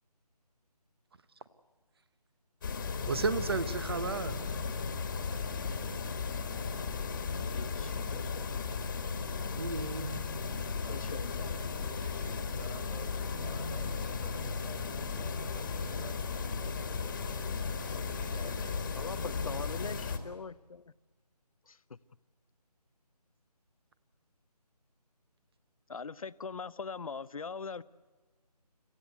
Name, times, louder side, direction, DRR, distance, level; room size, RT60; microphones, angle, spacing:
sound 1, 2.6-20.2, left 5 dB, 30° left, 1.8 m, -35 dB
voice 1, 3.1-4.4 9.6-10.2, right 4 dB, 35° right, 14 dB, 1.1 m, -33 dB
voice 2, 7.2-8.6 10.9-11.3 19.0-20.8 21.7-21.8 25.9-27.8, left 5 dB, 55° left, 17 dB, 0.8 m, -42 dB
voice 3, 10.6-19.3 19.6-20.1, right 1 dB, 85° right, 6 dB, 5.9 m, -52 dB
26.5 x 15.5 x 8.1 m, 1.4 s
figure-of-eight pair, 160°, 21 cm